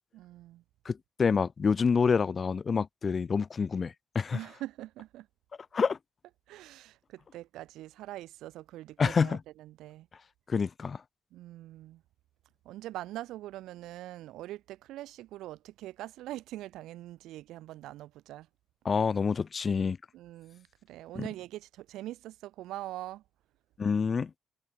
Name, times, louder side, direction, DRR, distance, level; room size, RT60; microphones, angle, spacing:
voice 1, 0.1-0.6 4.3-5.3 6.5-10.1 11.3-12.0 12.6-18.5 20.1-23.2, right 15 dB, 90° right, 5.9 m, -43 dB
voice 2, 0.9-4.4 5.7-6.0 9.0-9.4 10.5-11.0 18.9-20.0 21.2-21.3 23.8-24.3, left 5 dB, 40° left, 1.9 m, -27 dB
cardioid pair, 90°, 0 cm